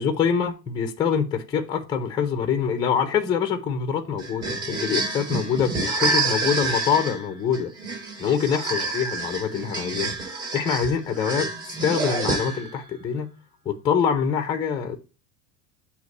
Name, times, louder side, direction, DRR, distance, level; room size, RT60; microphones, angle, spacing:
voice 1, 0.0-7.7 8.2-10.1 10.5-11.5 11.8-13.3 13.6-15.0, left 7 dB, 10° left, 0.5 m, -25 dB
sound 1, 4.2-12.8, right 3 dB, 30° right, 3.8 m, -28 dB
7.9 x 2.9 x 5.2 m
supercardioid pair, 170°, 38 cm